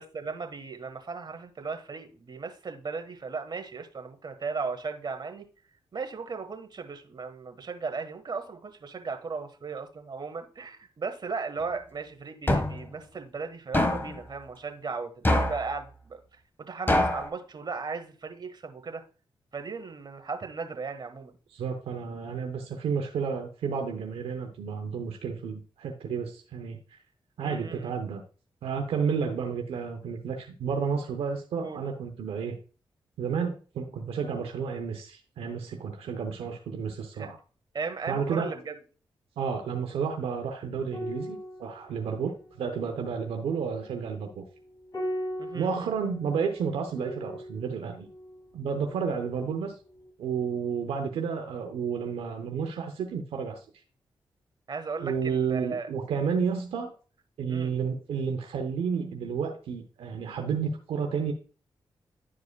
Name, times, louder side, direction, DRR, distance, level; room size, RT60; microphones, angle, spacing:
voice 1, 0.0-5.5 5.9-16.2 16.6-19.0 19.5-21.3 27.4-27.9 29.1-29.2 31.6-31.8 37.2-37.3 37.7-38.8 45.4-45.9 54.7-55.9 57.5-57.7, right 4 dB, 50° right, 1.3 m, -36 dB
sound 1, 12.5-12.9 13.7-14.2 15.2-15.7 16.9-17.3, left 1 dB, 20° left, 1.4 m, -24 dB
voice 2, 21.5-26.8 27.4-28.2 28.6-32.6 33.2-37.4 38.1-38.5 39.4-44.4 45.5-48.1 48.5-49.7 50.2-53.6 55.0-56.9 57.4-61.3, right 6 dB, 90° right, 0.8 m, -31 dB
sound 2, 40.9-49.6 49.9-50.1, equal, 45° left, 3.2 m, -40 dB
11.0 x 4.7 x 2.2 m
cardioid pair, 55°, 9 cm